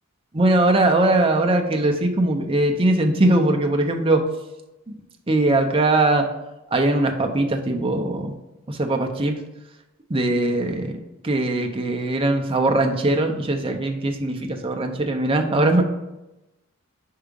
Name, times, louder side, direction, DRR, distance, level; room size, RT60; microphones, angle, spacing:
voice 1, 0.3-4.2 5.3-6.3 6.7-8.3 8.7-9.4 10.1-11.0 11.2-15.8, right 2 dB, 25° right, 4 dB, 0.6 m, -20 dB
4.9 x 4.7 x 5.1 m, 0.98 s
head